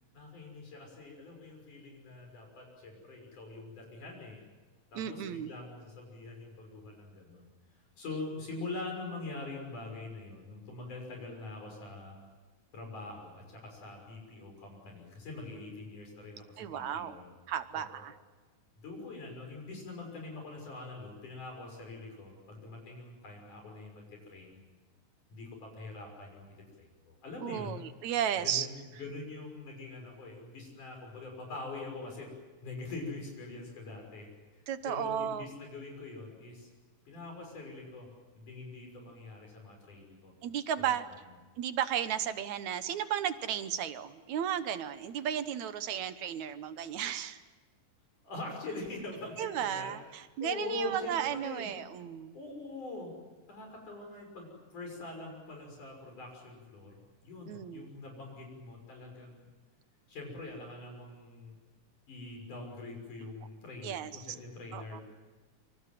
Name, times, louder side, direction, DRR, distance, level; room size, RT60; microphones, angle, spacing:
voice 1, 0.1-4.5 4.9-7.5 8.0-12.2 12.7-17.3 17.7-18.0 18.8-24.6 25.3-26.5 26.8-27.8 28.4-32.3 32.6-34.3 34.8-36.7 37.1-38.1 38.4-40.3 40.8-40.9 48.2-49.9 50.4-51.7 52.3-53.2 53.5-59.5 60.1-61.5 62.1-65.0, left 2 dB, 70° left, 1 dB, 7.8 m, -43 dB
voice 2, 4.9-5.5 16.6-18.2 27.4-28.7 34.7-35.4 40.4-41.1 41.6-47.4 49.4-52.4 57.5-57.9 63.8-64.4 64.7-65.0, right 9 dB, 65° right, 11 dB, 2.3 m, -34 dB
27.0 x 26.0 x 7.7 m, 1.3 s
omnidirectional pair, 3.7 m